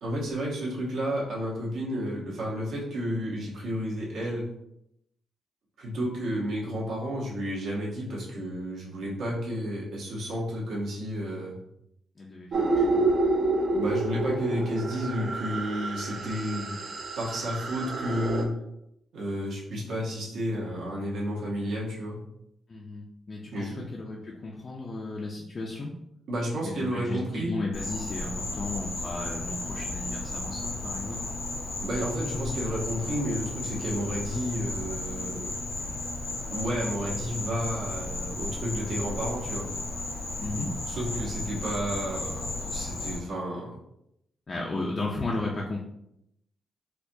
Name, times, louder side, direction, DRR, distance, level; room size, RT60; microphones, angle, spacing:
voice 1, 0.0-4.5 5.8-11.6 13.7-16.8 17.2-18.6 19.1-22.2 23.5-23.9 26.3-27.6 31.8-35.5 36.5-39.7 40.9-43.8, equal, 70° right, -5 dB, 1.0 m, -31 dB
voice 2, 12.2-13.1 22.7-26.0 26.6-31.3 40.4-40.9 44.5-45.8, left 2 dB, 25° left, -2 dB, 0.4 m, -35 dB
sound 1, 12.5-18.4, right 2 dB, 45° right, 0.4 m, -28 dB
Insect, 27.7-43.2, left 2 dB, 85° left, 1.1 m, -34 dB
4.3 x 2.3 x 2.7 m, 0.80 s
wide cardioid pair, 170°, 0 cm